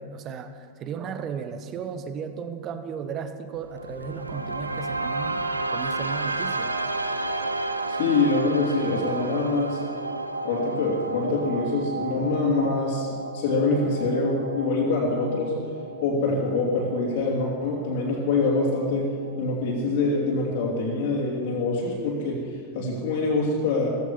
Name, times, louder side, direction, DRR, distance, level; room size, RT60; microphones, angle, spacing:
voice 1, 0.0-5.5 5.7-6.8, right 6 dB, 30° right, 9 dB, 1.2 m, -35 dB
sound 1, 3.5-19.5, right 2 dB, 80° right, 0.8 m, -32 dB
voice 2, 7.9-9.8 10.4-13.1 13.3-15.5 16.0-19.1 19.4-22.5 22.7-23.9, left 3 dB, 50° left, -4 dB, 3.2 m, -25 dB
16.0 x 15.0 x 5.6 m, 2.3 s
figure-of-eight pair, 90°, 0 cm